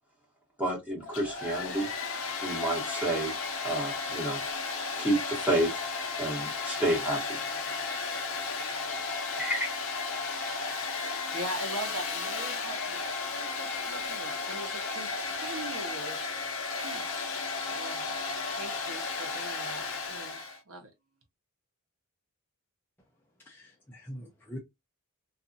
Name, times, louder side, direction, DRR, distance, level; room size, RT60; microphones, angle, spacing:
voice 1, 0.6-1.9 2.4-3.3 3.6-4.4 5.0-5.7 6.2-7.4 9.4-9.7, right 1 dB, 5° right, 1.4 m, -29 dB
Domestic sounds home sounds, 1.0-20.6, left 4 dB, 60° left, 0.6 m, -34 dB
voice 2, 11.3-16.2 16.6-17.2 17.7-20.4 20.7-20.9, right 2 dB, 65° right, 0.9 m, -42 dB
voice 3, 23.4-24.6, equal, 10° left, 0.5 m, -43 dB
2.6 x 2.5 x 2.5 m
head